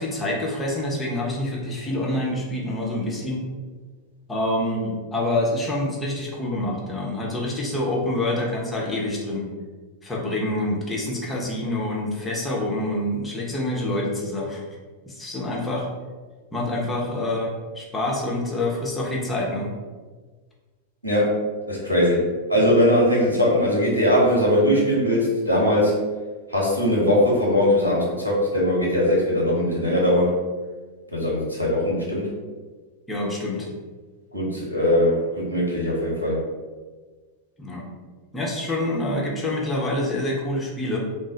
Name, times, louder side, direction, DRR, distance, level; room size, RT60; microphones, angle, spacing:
voice 1, 0.0-3.4 4.3-9.5 10.0-14.6 15.1-15.9 16.5-19.7 33.1-33.7 37.6-37.9 38.3-41.0, left 1 dB, 15° left, -3 dB, 0.7 m, -26 dB
voice 2, 21.0-21.4 21.7-26.0 26.5-30.4 31.1-32.3 34.3-36.4, left 1 dB, 85° right, -4 dB, 0.9 m, -20 dB
3.0 x 2.0 x 3.8 m, 1.4 s
figure-of-eight pair, 90°, 0 cm